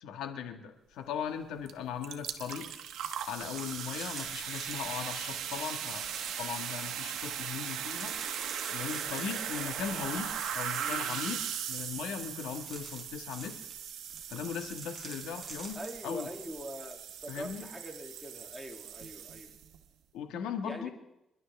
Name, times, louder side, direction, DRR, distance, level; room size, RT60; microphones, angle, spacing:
voice 1, 0.0-2.7 3.3-6.1 6.4-8.2 8.7-13.6 14.3-16.3 17.3-17.7 20.1-20.9, left 7 dB, 90° left, 6 dB, 1.7 m, -38 dB
sound 1, 1.7-1.8 2.0-19.8, right 9 dB, 80° right, 1.3 m, -39 dB
sound 2, 3.5-16.9 17.2-17.5, right 3 dB, 35° right, 4.3 m, -49 dB
voice 2, 10.7-11.2 15.7-19.5 20.6-20.9, right 1 dB, ahead, 2 dB, 2.6 m, -43 dB
28.0 x 11.5 x 3.5 m, 0.87 s
cardioid pair, 90°, 0 cm